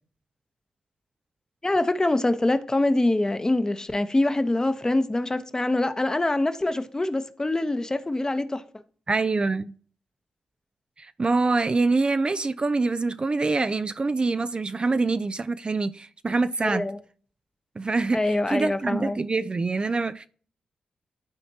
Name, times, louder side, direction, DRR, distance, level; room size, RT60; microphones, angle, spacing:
voice 1, 1.6-8.6 16.6-17.0 18.1-19.2, left 2 dB, 25° left, 0.9 m, -24 dB
voice 2, 9.1-9.7 11.0-16.9 17.8-20.3, right 3 dB, 35° right, 0.4 m, -25 dB
12.0 x 4.3 x 2.8 m
supercardioid pair, 50°, 3 cm